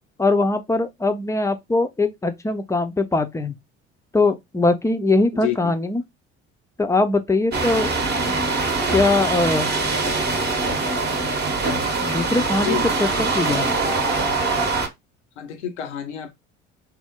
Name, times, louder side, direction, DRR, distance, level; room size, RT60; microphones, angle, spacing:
voice 1, 0.2-3.5 4.1-6.0 6.8-7.9 8.9-9.7 12.0-13.1 13.3-13.7, left 3 dB, 10° left, 0.5 m, -21 dB
voice 2, 5.3-5.8 12.6-12.9 15.4-16.3, left 10 dB, 75° left, 0.6 m, -29 dB
sound 1, 7.5-14.9, right 3 dB, 30° right, 0.9 m, -23 dB
3.5 x 2.1 x 4.2 m
figure-of-eight pair, 55°, 35 cm